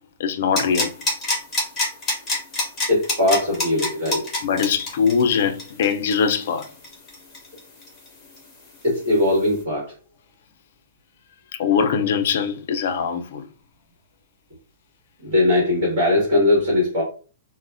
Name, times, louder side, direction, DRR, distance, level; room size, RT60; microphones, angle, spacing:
voice 1, 0.2-0.9 4.4-6.7 11.6-13.4, left 6 dB, 50° left, 0.4 m, -22 dB
sound 1, 0.6-8.1 8.4-8.5, left 2 dB, 10° left, 0.9 m, -26 dB
voice 2, 2.9-4.2 8.8-9.9 15.2-17.0, left 2 dB, 40° right, 1.4 m, -20 dB
3.9 x 2.1 x 2.5 m
hypercardioid pair, 170°, 0 cm